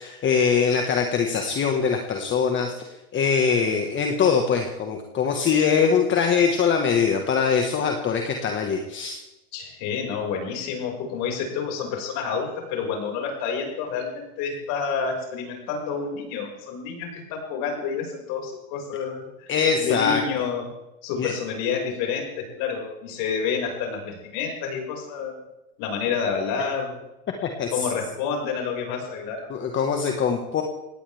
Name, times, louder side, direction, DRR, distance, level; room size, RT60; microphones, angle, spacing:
voice 1, 0.0-9.2 19.5-20.2 21.2-21.3 27.6-27.7 29.5-30.6, left 6 dB, 25° left, 3 dB, 1.7 m, -22 dB
voice 2, 9.5-19.5 19.8-20.7 21.0-25.4 25.8-27.0 27.7-29.5, left 6 dB, 50° left, 0 dB, 6.1 m, -29 dB
21.0 x 17.5 x 3.6 m, 0.97 s
supercardioid pair, 130°, 42 cm